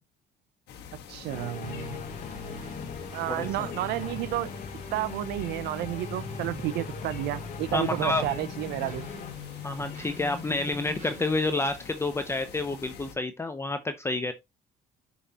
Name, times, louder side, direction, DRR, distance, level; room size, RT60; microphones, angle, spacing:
sound 1, 0.7-13.2, left 7 dB, 80° left, 1.3 m, -47 dB
voice 1, 1.1-2.0 3.1-4.5 4.9-9.1, right 15 dB, 80° right, 0.5 m, -31 dB
sound 2, 1.3-9.3, left 7 dB, 50° left, 1.1 m, -40 dB
sound 3, 1.6-11.3, left 1 dB, 50° right, 2.9 m, -43 dB
voice 2, 7.7-8.3 9.6-14.3, left 2 dB, 15° left, 0.6 m, -29 dB
6.8 x 5.6 x 2.9 m
cardioid pair, 110°, 17 cm